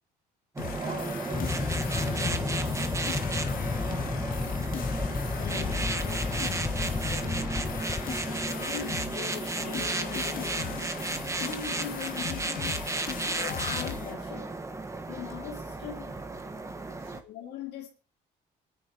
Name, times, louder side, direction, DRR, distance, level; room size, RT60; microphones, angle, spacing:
sound 1, 0.6-14.1, left 8 dB, 55° left, 1.8 m, -39 dB
sound 2, 0.6-17.2, right 3 dB, 15° right, 1.4 m, -34 dB
voice 1, 0.6-2.7 16.4-16.5 16.9-17.2, right 2 dB, 85° right, 5.2 m, -45 dB
sound 3, 1.3-9.1, left 4 dB, 20° left, 0.7 m, -32 dB
voice 2, 5.3-6.8 8.3-11.0 11.3-12.9 13.6-14.5 15.1-16.2 17.2-17.9, left 9 dB, 85° left, 2.5 m, -41 dB
26.0 x 9.9 x 2.9 m
cardioid pair, 110°, 17 cm